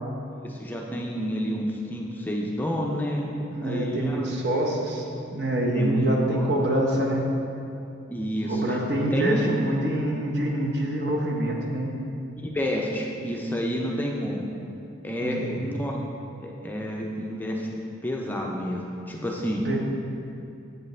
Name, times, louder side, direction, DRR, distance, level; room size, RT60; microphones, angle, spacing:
voice 1, 0.2-3.3 3.6-4.3 5.7-6.0 6.3-6.5 8.1-8.8 9.1-9.4 12.4-14.4 15.0-16.0 16.4-17.7 18.0-19.6, equal, 10° left, -1 dB, 0.4 m, -29 dB
voice 2, 3.5-7.3 8.5-11.9 15.2-15.7 19.6-19.8, right 1 dB, 55° right, -1 dB, 0.8 m, -26 dB
7.8 x 5.1 x 3.2 m, 2.7 s
head